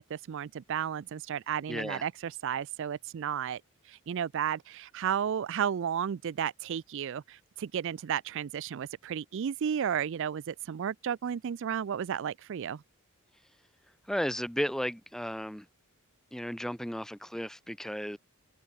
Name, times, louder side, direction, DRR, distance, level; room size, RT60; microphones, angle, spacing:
voice 1, 0.0-3.6 3.9-12.8, right 8 dB, 60° right, 0.4 m, -33 dB
voice 2, 1.7-2.0 14.1-15.7 16.3-18.2, equal, ahead, 0.9 m, -34 dB
head